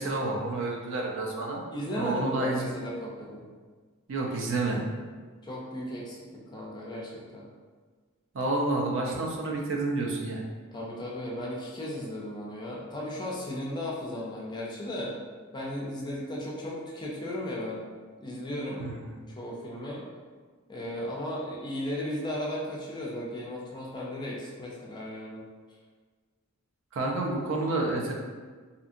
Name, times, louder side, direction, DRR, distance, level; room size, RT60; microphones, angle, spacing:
voice 1, 0.0-1.6 1.9-2.7 4.1-4.8 8.3-10.4 18.8-19.2 26.9-28.1, right 2 dB, 55° right, -1 dB, 0.5 m, -29 dB
voice 2, 1.7-3.5 5.4-7.5 10.7-15.1 15.5-17.9 18.2-18.9 19.3-20.0 20.7-25.5, left 1 dB, 20° left, -4 dB, 0.4 m, -35 dB
2.7 x 2.6 x 2.5 m, 1.5 s
head